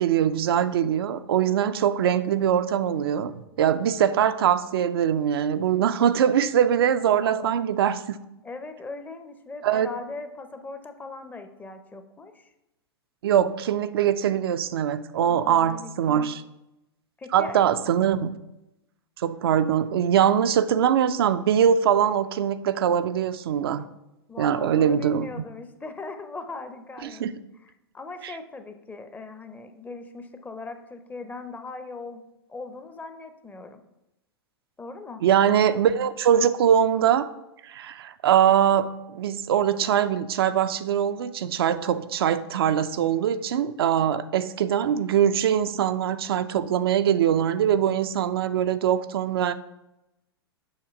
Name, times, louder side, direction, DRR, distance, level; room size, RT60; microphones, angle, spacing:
voice 1, 0.0-8.2 9.6-9.9 13.2-16.4 17.3-18.3 19.2-23.9 24.4-25.3 27.0-27.3 28.2-28.3 35.2-37.3 37.6-49.5, right 9 dB, 65° right, 0.4 m, -22 dB
voice 2, 8.4-12.5 15.3-16.3 17.2-17.7 24.3-27.3 27.6-32.2 32.5-33.8 34.8-35.2, left 3 dB, 10° left, 0.6 m, -39 dB
7.1 x 2.8 x 5.0 m
hypercardioid pair, 100°, 13 cm